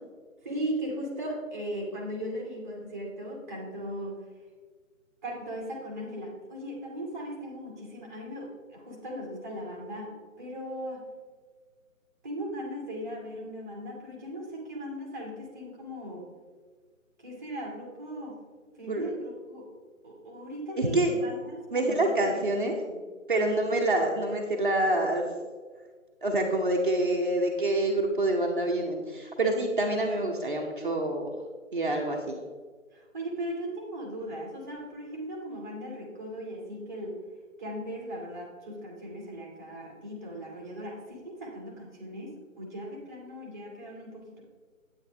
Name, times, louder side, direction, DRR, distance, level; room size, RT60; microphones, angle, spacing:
voice 1, 0.4-4.2 5.2-11.0 12.2-16.2 17.2-18.4 18.8-19.6 20.0-23.0 23.3-23.6 32.9-37.2 37.6-44.4, equal, 10° right, -2 dB, 1.2 m, -38 dB
voice 2, 20.8-21.2 21.7-22.8 23.3-25.2 26.2-31.4 31.7-32.4, right 1 dB, 40° right, 0 dB, 0.9 m, -26 dB
9.1 x 8.8 x 3.4 m, 1.5 s
figure-of-eight pair, 155°, 41 cm